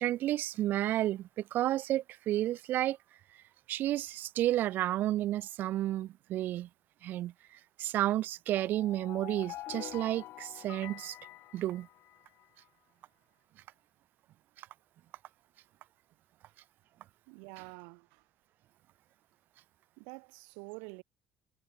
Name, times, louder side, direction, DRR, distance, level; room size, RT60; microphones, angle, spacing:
voice 1, 0.0-3.0 3.7-6.7 7.0-7.3 7.8-11.1 11.5-11.9, right 14 dB, 65° right, 0.6 m, -31 dB
sound 1, 8.5-12.5, left 16 dB, 75° left, 3.9 m, -46 dB
voice 2, 17.3-18.2 20.0-21.0, right 39 dB, 90° right, 5.3 m, -47 dB
supercardioid pair, 85°, 4 cm